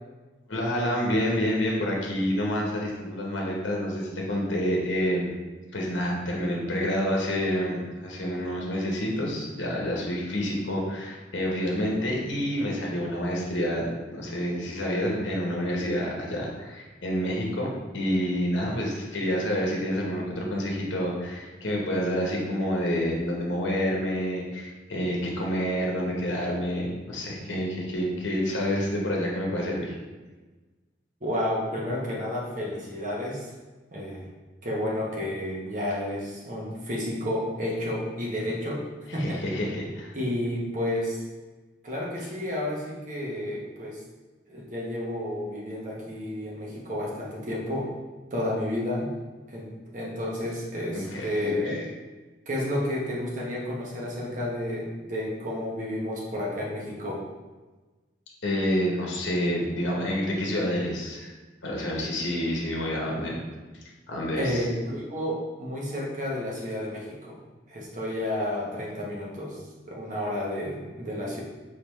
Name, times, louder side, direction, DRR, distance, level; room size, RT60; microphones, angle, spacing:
voice 1, 0.5-5.3 5.7-29.9 39.1-40.1 51.1-51.3 58.4-61.3 61.6-63.4 64.1-64.7, equal, 75° left, -2 dB, 0.9 m, -28 dB
voice 2, 31.2-33.5 33.9-34.3 34.6-38.8 39.1-39.4 40.1-41.2 41.8-44.0 44.5-47.9 48.3-49.1 49.5-51.9 52.5-57.3 64.4-67.4 67.7-69.6 69.8-71.4, left 1 dB, 40° right, -3 dB, 0.9 m, -31 dB
4.8 x 3.4 x 3.0 m, 1.3 s
head